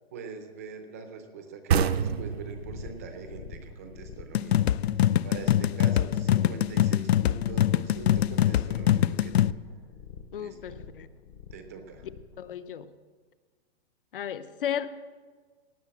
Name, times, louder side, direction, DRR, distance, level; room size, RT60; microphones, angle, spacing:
voice 1, 0.1-9.5 10.4-10.8 11.5-12.1, right 4 dB, 15° right, 7 dB, 0.6 m, -43 dB
sound 1, 1.7-5.1, right 7 dB, 75° right, 0.9 m, -29 dB
sound 2, 1.9-12.4, left 6 dB, 25° left, 0.7 m, -46 dB
sound 3, 4.3-9.5, left 11 dB, 80° left, 0.5 m, -24 dB
voice 2, 5.5-5.8 10.3-11.1 12.4-13.0 14.1-14.9, left 9 dB, 60° left, 12 dB, 0.8 m, -35 dB
17.5 x 6.7 x 8.5 m, 1.5 s
hypercardioid pair, 180°, 31 cm